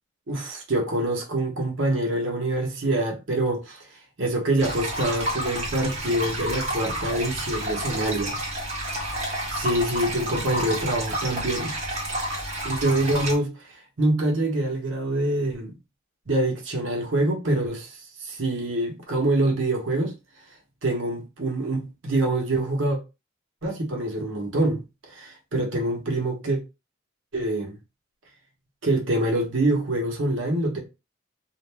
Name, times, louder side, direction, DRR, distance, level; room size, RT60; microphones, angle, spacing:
voice 1, 0.3-3.9 4.2-8.4 9.0-9.1 9.6-11.8 12.6-15.7 16.3-20.1 20.8-23.0 23.6-24.8 25.1-26.6 27.3-27.7 28.8-30.8, right 1 dB, 70° right, 0.8 m, -25 dB
sound 1, 4.6-13.3, right 1 dB, 35° right, 1.0 m, -30 dB
2.4 x 2.1 x 3.2 m
head